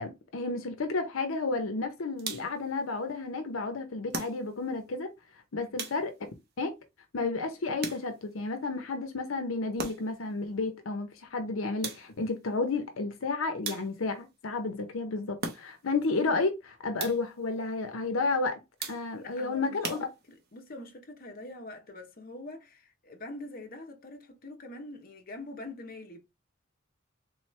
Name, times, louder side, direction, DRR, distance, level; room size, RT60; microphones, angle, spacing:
voice 1, 0.0-5.1 5.5-6.1 6.6-6.7 7.1-18.6 18.9-20.1, left 3 dB, 80° left, 0.7 m, -31 dB
sound 1, 2.2-2.7 4.1-4.8 5.8-6.4 7.8-8.4 9.8-10.3 11.8-12.3 13.6-14.2 15.4-16.0 17.0-17.4 18.8-19.3 19.8-20.6, right 4 dB, 50° right, 0.9 m, -39 dB
voice 2, 19.2-19.8 20.3-26.2, left 2 dB, 45° left, 0.9 m, -44 dB
3.9 x 3.1 x 3.1 m
head